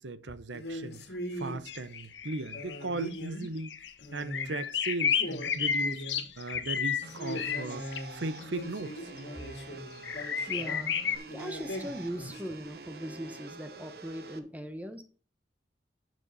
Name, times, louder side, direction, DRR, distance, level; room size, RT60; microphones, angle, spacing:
voice 1, 0.0-3.8 4.1-6.0 6.4-9.1, right 2 dB, 90° right, 0.8 m, -37 dB
sound 1, 0.5-1.6 2.5-3.6 4.0-4.6 4.9-5.0 5.1-6.4 7.1-10.8 11.3-12.6, equal, 65° left, 2.1 m, -41 dB
sound 2, 1.7-2.8 3.1-3.2 3.6-3.9 4.2-8.0 9.2-9.3 10.0-11.2, left 7 dB, 85° left, 1.2 m, -31 dB
sound 3, 7.0-14.4, right 3 dB, 55° right, 1.0 m, -47 dB
voice 2, 10.5-11.0 11.3-15.0, equal, 10° right, 1.0 m, -39 dB
12.0 x 6.3 x 4.1 m
head